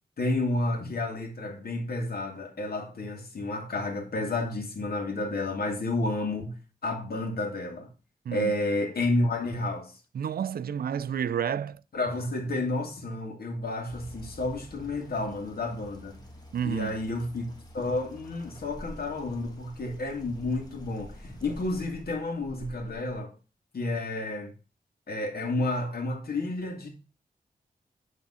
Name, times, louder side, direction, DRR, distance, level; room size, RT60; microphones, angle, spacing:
voice 1, 0.2-6.6 6.8-7.9 8.3-10.0 11.9-16.2 16.6-23.3 23.7-24.5 25.1-26.9, left 2 dB, 75° left, 2.0 m, -31 dB
voice 2, 10.1-11.8 16.5-17.0, right 8 dB, 70° right, 0.4 m, -30 dB
sound 1, 13.9-23.2, equal, 25° left, 1.5 m, -48 dB
8.7 x 3.6 x 5.6 m
wide cardioid pair, 95°, 16 cm